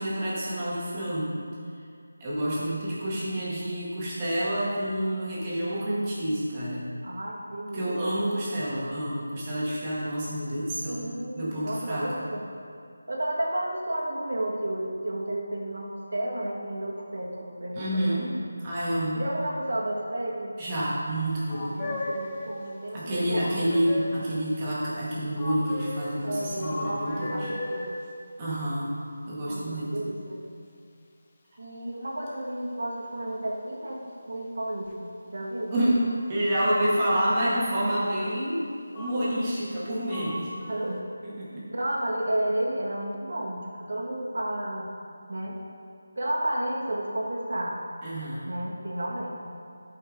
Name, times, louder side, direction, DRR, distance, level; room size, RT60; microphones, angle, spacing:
voice 1, 0.0-1.4 2.2-6.8 7.7-12.3 17.7-18.3 18.6-19.2 20.6-21.8 22.9-27.5 28.4-28.9 29.3-30.1 35.7-40.6 41.2-41.6 48.0-48.5, right 1 dB, 20° right, -9 dB, 2.0 m, -28 dB
voice 2, 7.0-8.2 10.9-12.5 13.1-18.2 19.1-20.5 21.7-23.8 26.2-27.9 29.5-30.4 31.6-35.7 40.7-41.1 41.5-44.9 45.3-45.6 46.2-47.8 48.4-49.3, right 1 dB, 70° right, -2 dB, 1.8 m, -32 dB
sound 1, 21.5-22.6 23.4-24.4 25.3-28.0 34.9-35.0 35.7-36.6 37.3-38.1 38.9-39.8 40.1-41.0, left 1 dB, 20° left, 0.7 m, -37 dB
13.0 x 5.5 x 3.8 m, 2.3 s
figure-of-eight pair, 170°, 0 cm